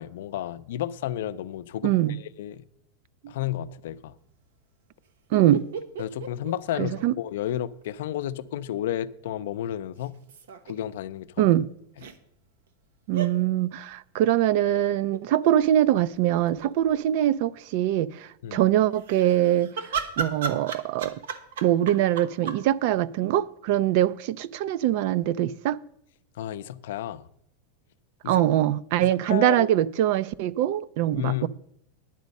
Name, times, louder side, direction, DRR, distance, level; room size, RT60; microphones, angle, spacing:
voice 1, 0.0-2.6 3.3-4.1 6.0-10.2 10.6-11.4 18.4-18.7 26.4-27.3 28.2-28.4 29.0-29.7 31.1-31.5, left 12 dB, 80° left, 0.5 m, -32 dB
voice 2, 1.8-2.2 3.2-3.3 5.3-5.7 6.8-7.1 11.4-11.7 13.1-19.7 20.2-21.2 21.6-25.8 28.3-31.5, right 12 dB, 60° right, 0.4 m, -23 dB
sound 1, 5.3-7.5 7.8-7.9 10.0-10.7 12.0-12.2 13.1-13.3 15.1-15.5 16.0-16.1 16.3-17.0 19.0-22.6, right 6 dB, 90° right, 1.0 m, -35 dB
10.5 x 8.1 x 5.3 m
supercardioid pair, 140°, 0 cm